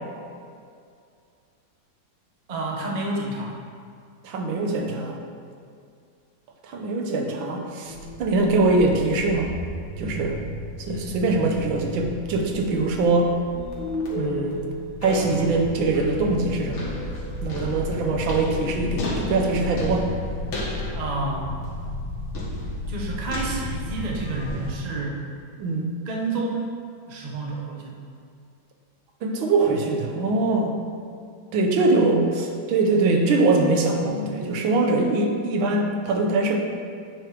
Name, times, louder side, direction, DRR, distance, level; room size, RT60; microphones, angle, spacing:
voice 1, 2.5-3.6 20.9-21.5 22.9-25.2 26.1-26.7 27.1-28.0, right 2 dB, 45° right, -2 dB, 0.5 m, -29 dB
voice 2, 4.2-5.2 6.6-9.5 10.0-10.4 10.8-13.3 14.1-14.6 15.0-16.9 17.4-20.1 25.6-25.9 29.2-30.7 31.5-36.6, right 3 dB, 80° right, 2 dB, 1.6 m, -23 dB
sound 1, 7.9-24.7, left 1 dB, 90° left, 2.1 m, -32 dB
9.1 x 3.3 x 4.6 m, 2.3 s
omnidirectional pair, 2.1 m